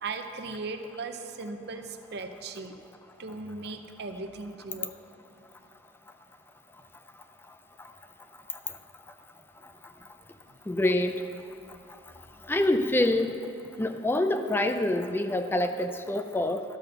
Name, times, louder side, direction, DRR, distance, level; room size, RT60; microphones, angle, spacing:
voice 1, 0.0-2.7 3.2-4.9, right 3 dB, 65° right, 7 dB, 0.6 m, -37 dB
voice 2, 10.7-11.1 12.5-13.4 13.8-16.6, left 1 dB, 10° left, 7 dB, 0.3 m, -26 dB
12.5 x 4.2 x 6.6 m, 2.8 s
head